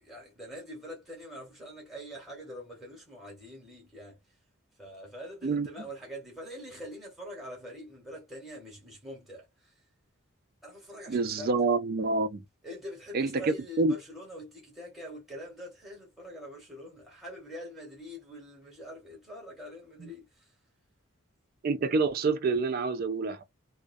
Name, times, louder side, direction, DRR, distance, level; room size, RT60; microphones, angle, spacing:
voice 1, 0.0-4.2 4.8-9.7 10.6-11.5 12.6-20.5, equal, ahead, 0.9 m, -44 dB
voice 2, 11.1-12.4 13.1-14.0 20.0-20.1 21.6-23.4, right 3 dB, 45° right, 0.3 m, -27 dB
2.3 x 2.1 x 2.5 m
head